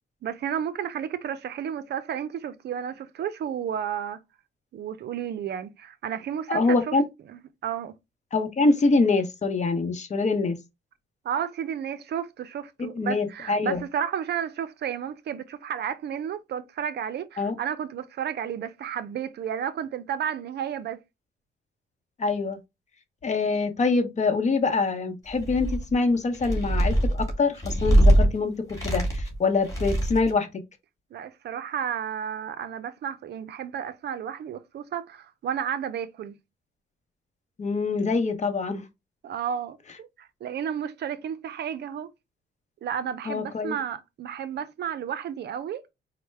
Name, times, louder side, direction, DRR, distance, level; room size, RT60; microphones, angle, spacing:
voice 1, 0.2-4.2 4.7-6.9 7.3-7.9 11.2-21.0 31.1-36.4 39.2-42.1 42.8-45.9, right 8 dB, 55° right, 0.5 m, -32 dB
voice 2, 6.5-7.0 8.3-10.6 12.8-13.8 17.4-17.5 22.2-22.6 23.2-30.6 37.6-38.8 43.3-43.8, left 3 dB, 35° left, 0.8 m, -25 dB
sound 1, 25.3-25.9 26.3-28.3 28.7-29.3 29.6-30.3, right 1 dB, 15° left, 2.0 m, -22 dB
4.3 x 2.1 x 3.2 m
cardioid pair, 90°, 20 cm